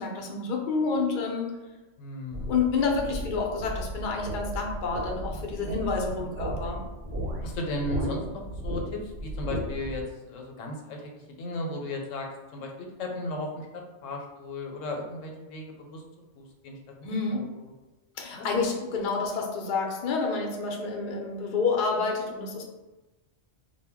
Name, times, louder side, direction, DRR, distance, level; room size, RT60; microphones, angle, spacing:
voice 1, 0.0-1.5 2.4-6.8 17.0-17.4 18.2-22.6, left 4 dB, 60° left, 0 dB, 0.5 m, -29 dB
voice 2, 2.0-2.5 6.0-6.3 7.4-16.0 16.3-16.8 17.1-17.7 18.4-18.5, left 1 dB, 85° left, 1 dB, 0.9 m, -36 dB
sound 1, 2.3-10.0, right 1 dB, 60° right, 0.7 m, -35 dB
2.1 x 2.1 x 3.4 m, 1.1 s
omnidirectional pair, 1.3 m